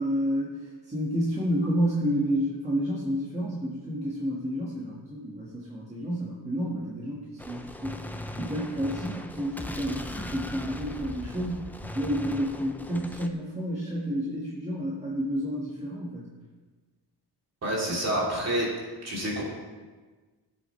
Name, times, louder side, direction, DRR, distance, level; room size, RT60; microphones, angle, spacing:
voice 1, 0.0-16.3, equal, 15° right, -6 dB, 1.6 m, -30 dB
Gunshot gunfire, 7.4-13.3, left 1 dB, 5° left, 0.3 m, -39 dB
voice 2, 17.6-18.7 19.0-19.4, right 1 dB, 40° right, -4 dB, 3.0 m, -28 dB
18.0 x 7.9 x 3.2 m, 1.3 s
wide cardioid pair, 170°, 40 cm